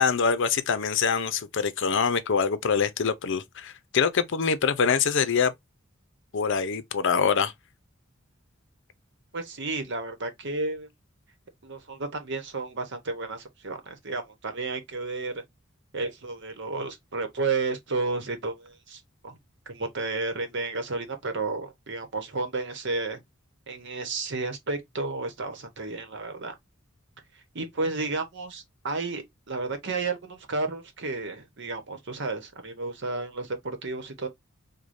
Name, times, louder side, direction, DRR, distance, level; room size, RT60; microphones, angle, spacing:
voice 1, 0.0-5.5 6.3-7.5, left 6 dB, 60° left, 0.6 m, -24 dB
voice 2, 9.3-10.9 11.6-15.4 15.9-19.4 19.7-23.2 23.7-26.5 27.5-34.3, right 3 dB, 60° right, 1.0 m, -32 dB
4.8 x 2.2 x 2.6 m
head